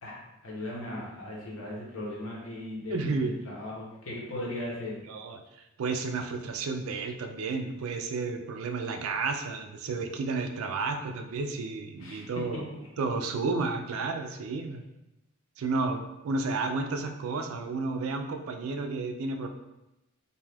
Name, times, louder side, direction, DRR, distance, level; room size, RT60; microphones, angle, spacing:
voice 1, 0.0-5.0 12.0-12.6 13.0-13.1, left 1 dB, 70° left, -4 dB, 0.9 m, -38 dB
voice 2, 2.9-3.3 5.1-5.4 5.8-12.6 13.0-14.8 15.6-19.5, right 3 dB, 80° right, 6 dB, 0.4 m, -32 dB
2.6 x 2.3 x 3.2 m, 0.94 s
head